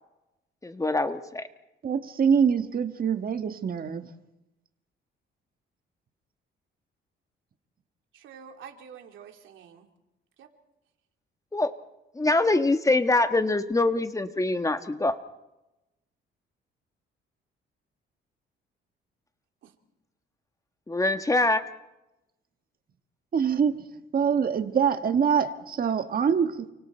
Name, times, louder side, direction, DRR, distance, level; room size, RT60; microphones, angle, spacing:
voice 1, 0.6-1.5 11.5-11.7 12.1-15.2 20.9-21.6, left 2 dB, 15° left, 1.3 m, -24 dB
voice 2, 1.8-4.1 23.3-23.9 24.1-26.7, right 7 dB, 45° right, 1.6 m, -24 dB
voice 3, 8.1-9.9 10.4-10.5 19.6-19.7, right 7 dB, 75° right, 2.9 m, -47 dB
29.5 x 25.0 x 4.5 m
cardioid pair, 90°, 20 cm